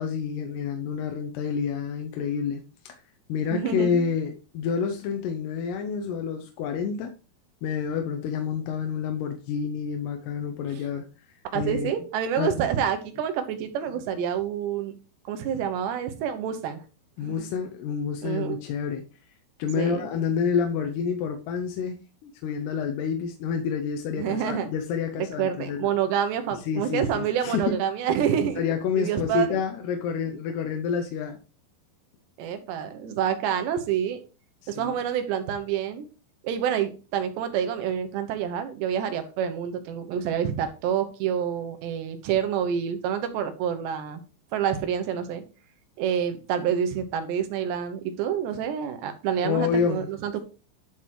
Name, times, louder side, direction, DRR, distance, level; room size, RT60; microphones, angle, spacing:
voice 1, 0.0-3.0 3.3-7.1 7.6-11.0 11.5-11.9 12.4-12.5 17.2-19.0 19.6-25.9 26.7-27.7 28.1-28.2 28.6-31.4 34.6-35.0 49.4-50.1, left 6 dB, 75° left, 5 dB, 2.7 m, -28 dB
voice 2, 3.5-4.1 10.7-10.8 11.5-14.9 15.3-16.8 17.2-17.5 18.2-18.6 19.8-20.1 24.2-24.7 25.2-28.6 29.0-29.5 30.3-30.4 32.4-34.2 34.7-36.1 36.4-44.2 44.5-45.4 46.0-50.4, right 9 dB, 75° right, 8 dB, 3.1 m, -28 dB
11.0 x 4.0 x 4.6 m, 0.34 s
omnidirectional pair, 5.2 m